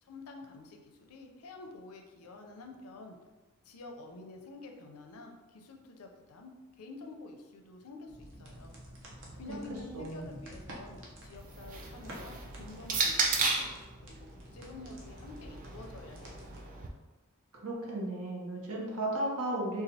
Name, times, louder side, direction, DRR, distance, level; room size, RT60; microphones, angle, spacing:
voice 1, 0.0-3.2 3.6-8.7 9.3-16.5, left 3 dB, 90° left, 3 dB, 0.5 m, -49 dB
sound 1, 8.1-16.6, right 1 dB, 60° right, 0.8 m, -50 dB
voice 2, 9.9-10.4 17.6-19.8, right 1 dB, 90° right, -2 dB, 0.8 m, -34 dB
sound 2, 11.4-13.8 14.8-16.9, right 4 dB, 40° right, 0.4 m, -34 dB
4.1 x 2.4 x 2.7 m, 1.3 s
head